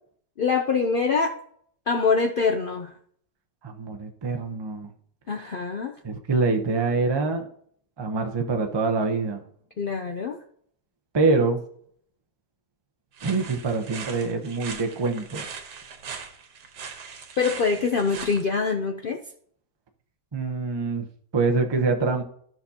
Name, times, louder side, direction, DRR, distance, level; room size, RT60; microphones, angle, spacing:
voice 1, 0.4-1.4 1.9-2.9 5.3-6.0 9.8-10.4 17.4-19.2, left 5 dB, 85° left, 5 dB, 0.4 m, -24 dB
voice 2, 3.6-4.9 6.0-7.5 8.0-9.4 11.1-11.6 13.2-15.4 20.3-21.1 21.3-22.2, right 3 dB, 25° right, 4 dB, 0.6 m, -25 dB
sound 1, 13.2-18.4, right 6 dB, 85° right, 1.6 m, -40 dB
13.0 x 6.0 x 2.8 m, 0.63 s
omnidirectional pair, 1.7 m